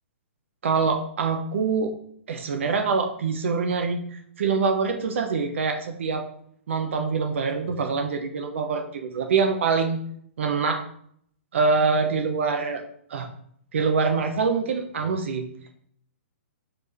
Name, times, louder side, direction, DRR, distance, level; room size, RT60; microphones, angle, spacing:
voice 1, 0.6-1.9 2.3-6.3 6.7-10.0 10.4-10.8 11.5-12.8 13.1-13.3 13.7-15.5, right 4 dB, 65° right, 4 dB, 1.0 m, -25 dB
5.0 x 4.4 x 4.2 m, 0.64 s
hypercardioid pair, 160°, 7 cm